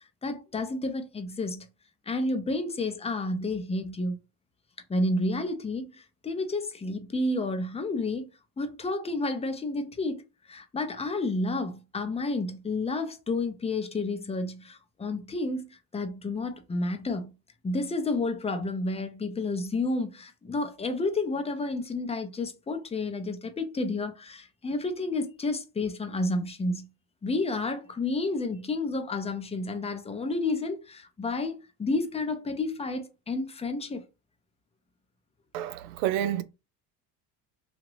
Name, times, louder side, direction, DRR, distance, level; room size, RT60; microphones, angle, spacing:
voice 1, 0.0-1.7 2.1-4.2 4.9-8.3 8.6-10.2 10.5-17.3 17.6-26.9 27.2-34.0, left 2 dB, 15° left, 0.6 m, -30 dB
voice 2, 35.5-36.4, right 11 dB, 80° right, 0.6 m, -29 dB
2.8 x 2.5 x 3.1 m
supercardioid pair, 95°, 42 cm